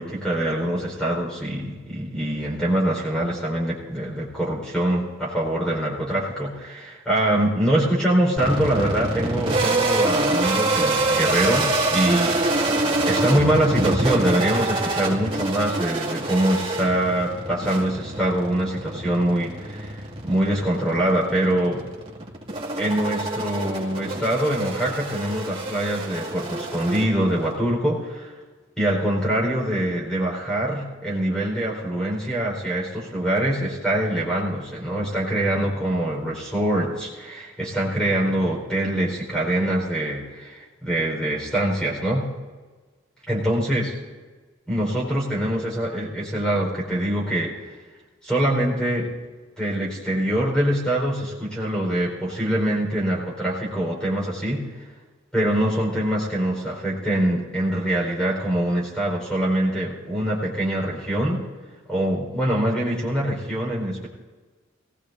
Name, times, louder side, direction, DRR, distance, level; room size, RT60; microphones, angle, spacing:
voice 1, 0.0-21.8 22.8-28.3 28.8-42.3 43.3-43.9 44.7-47.6 48.2-49.1 49.6-54.7 55.3-61.4 61.9-64.1, right 1 dB, 5° left, -3 dB, 4.7 m, -24 dB
sound 1, 8.4-27.6, right 2 dB, 30° right, 2.4 m, -26 dB
23.0 x 18.5 x 2.7 m, 1.3 s
head